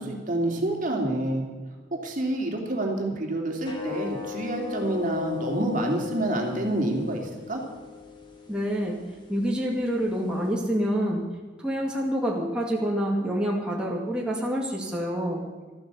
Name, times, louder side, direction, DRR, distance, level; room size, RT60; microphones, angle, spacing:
voice 1, 0.0-1.4 1.9-7.6, right 1 dB, 45° right, 1 dB, 2.9 m, -28 dB
sound 1, 3.6-10.5, left 8 dB, 25° left, 2.0 m, -38 dB
voice 2, 8.5-9.0 9.3-11.2 11.6-15.4, equal, 5° right, -3 dB, 2.4 m, -27 dB
14.0 x 12.5 x 7.0 m, 1.3 s
head